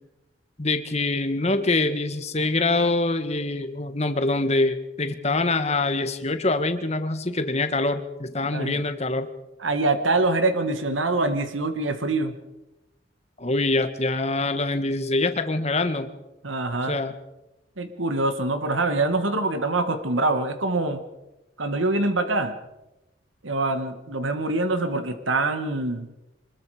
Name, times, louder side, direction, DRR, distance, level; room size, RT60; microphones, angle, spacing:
voice 1, 0.6-9.3 13.4-16.1 16.9-17.1, left 2 dB, 35° left, 9 dB, 1.6 m, -24 dB
voice 2, 9.6-12.4 16.4-17.0 17.8-21.0 21.6-22.6 23.4-26.1, right 2 dB, 90° right, 8 dB, 1.7 m, -24 dB
25.0 x 21.0 x 5.0 m, 0.98 s
head